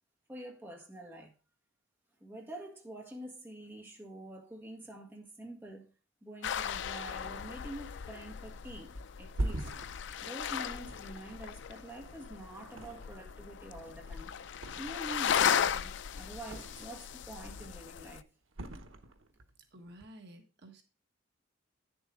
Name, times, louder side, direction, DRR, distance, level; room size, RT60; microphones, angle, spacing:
voice 1, 0.3-1.3 2.2-5.9 6.2-9.7 10.2-14.3 14.8-18.3, right 1 dB, 10° right, 1.6 m, -46 dB
sound 1, 6.4-18.2, left 8 dB, 60° left, 0.4 m, -36 dB
Thump thud, 8.9-12.2 12.7-13.4 13.7-15.2 15.5-17.1 17.4-18.0 18.5-19.5 19.8-20.0, right 1 dB, 85° right, 1.0 m, -41 dB
voice 2, 19.7-20.8, right 1 dB, 55° right, 1.3 m, -52 dB
9.5 x 7.0 x 3.7 m
head